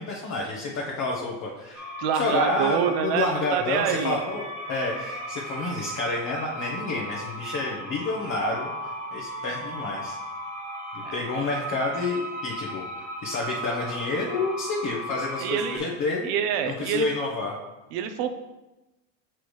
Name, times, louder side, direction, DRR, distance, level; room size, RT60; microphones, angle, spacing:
voice 1, 0.0-1.8 2.1-8.7 9.1-10.2 10.9-16.3 16.6-17.6, left 3 dB, 40° left, -2 dB, 1.2 m, -29 dB
sound 1, 1.7-15.8, right 1 dB, 40° right, 1.8 m, -36 dB
voice 2, 2.0-4.2 11.0-11.2 15.4-15.8 16.2-17.1 17.9-18.4, right 8 dB, 65° right, 8 dB, 0.9 m, -26 dB
6.7 x 6.1 x 3.2 m, 1.0 s
supercardioid pair, 125°, 45 cm